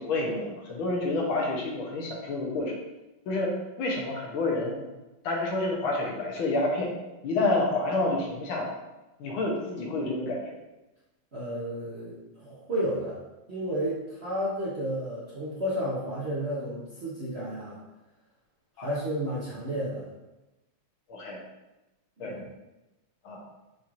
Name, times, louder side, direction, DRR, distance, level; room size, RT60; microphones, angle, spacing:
voice 1, 0.0-2.7 3.3-3.5 3.8-4.8 5.2-6.9 7.2-8.8 9.2-10.6 18.8-18.9 21.1-21.4 22.2-22.4 23.2-23.4, left 2 dB, 70° left, -1 dB, 1.6 m, -29 dB
voice 2, 11.3-13.2 13.5-17.8 18.8-20.1 22.2-22.4, equal, 50° right, -9 dB, 0.8 m, -32 dB
6.9 x 3.1 x 2.5 m, 1.0 s
omnidirectional pair, 2.4 m